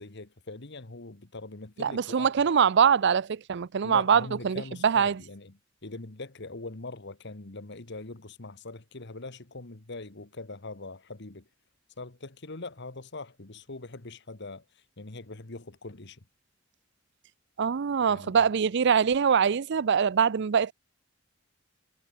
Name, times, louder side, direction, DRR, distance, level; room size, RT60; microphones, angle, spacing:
voice 1, 0.0-2.3 3.8-11.5 12.0-14.6 15.0-16.2 18.1-18.4, left 2 dB, 60° left, 1.7 m, -42 dB
voice 2, 1.8-5.2 17.6-20.7, right 7 dB, 60° right, 0.5 m, -23 dB
head